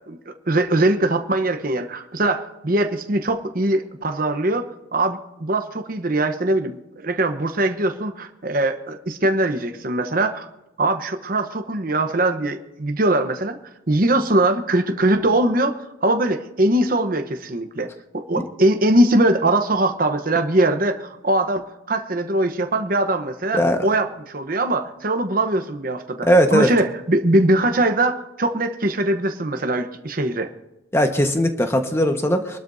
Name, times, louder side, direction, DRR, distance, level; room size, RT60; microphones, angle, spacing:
voice 1, 0.1-6.8 7.0-10.5 10.8-13.6 13.9-17.9 18.1-30.5, right 1 dB, 45° right, 6 dB, 1.0 m, -21 dB
voice 2, 23.5-23.9 26.2-26.7 30.9-32.6, equal, 15° left, 5 dB, 1.3 m, -19 dB
25.5 x 12.0 x 2.7 m, 0.94 s
head